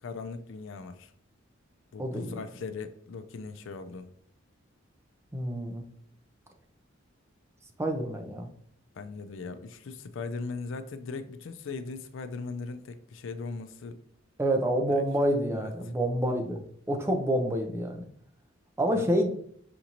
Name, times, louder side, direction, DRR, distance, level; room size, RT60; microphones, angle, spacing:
voice 1, 0.0-1.1 1.9-4.1 8.9-14.0 14.9-15.0 15.5-15.7 18.9-19.1, left 4 dB, 70° left, 10 dB, 0.4 m, -39 dB
voice 2, 2.0-2.4 5.3-5.8 7.8-8.5 14.4-16.6 16.9-18.1 18.8-19.3, right 1 dB, 15° right, 3 dB, 0.5 m, -27 dB
5.8 x 2.6 x 2.8 m, 0.63 s
head